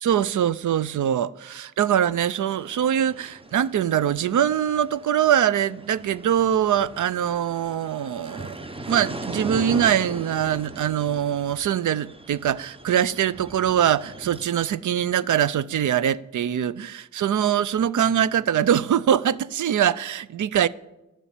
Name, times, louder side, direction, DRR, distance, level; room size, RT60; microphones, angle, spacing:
voice 1, 0.0-20.7, right 9 dB, 70° right, 0.5 m, -23 dB
sound 1, 2.6-14.4, right 2 dB, 15° right, 0.8 m, -39 dB
11.5 x 7.0 x 8.4 m
cardioid pair, 60°, 32 cm